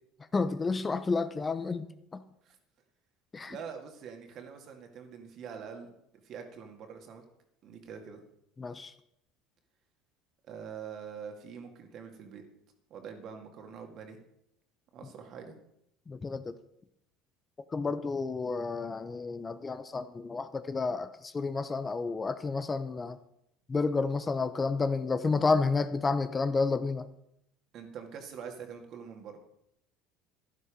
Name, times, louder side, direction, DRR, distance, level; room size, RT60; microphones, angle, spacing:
voice 1, 0.3-1.9 2.1-2.2 3.3-3.6 8.6-8.9 16.1-16.6 17.7-23.2 23.7-27.1, left 4 dB, 25° left, 12 dB, 0.7 m, -30 dB
voice 2, 3.5-5.9 6.2-7.2 7.6-8.2 10.5-12.4 12.9-14.2 14.9-15.5 27.7-29.4, right 6 dB, 50° right, 4 dB, 2.3 m, -44 dB
11.0 x 11.0 x 5.1 m, 0.78 s
supercardioid pair, 90°, 0 cm